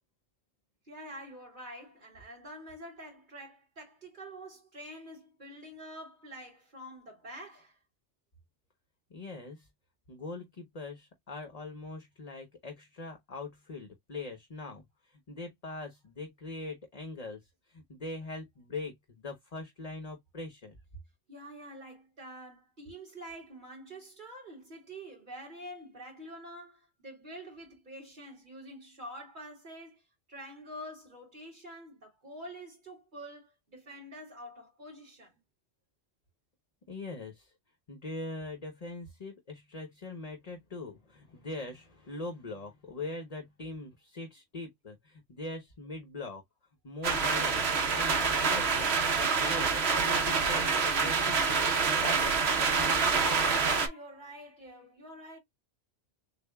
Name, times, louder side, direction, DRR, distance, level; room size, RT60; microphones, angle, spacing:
voice 1, 0.9-7.8 21.3-30.0 30.3-35.4 53.4-55.4, equal, 40° right, 2.7 m, -47 dB
voice 2, 9.1-9.7 10.1-20.8 36.9-37.5 37.9-46.4 46.8-49.0 49.4-52.2 52.5-53.1, left 2 dB, 35° left, 1.0 m, -42 dB
sound 1, 47.0-53.9, right 5 dB, 60° right, 1.2 m, -27 dB
6.8 x 2.3 x 2.3 m
omnidirectional pair, 1.2 m